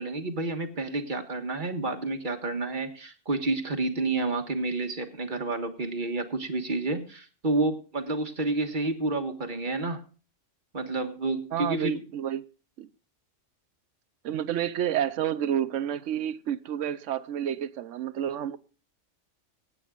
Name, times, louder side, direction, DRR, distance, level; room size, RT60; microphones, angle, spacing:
voice 1, 0.0-10.0 10.7-12.0, right 2 dB, 40° right, 1.6 m, -30 dB
voice 2, 11.5-12.4 12.8-12.9 14.2-18.6, right 10 dB, 75° right, 1.0 m, -29 dB
25.0 x 8.7 x 2.4 m
omnidirectional pair, 1.3 m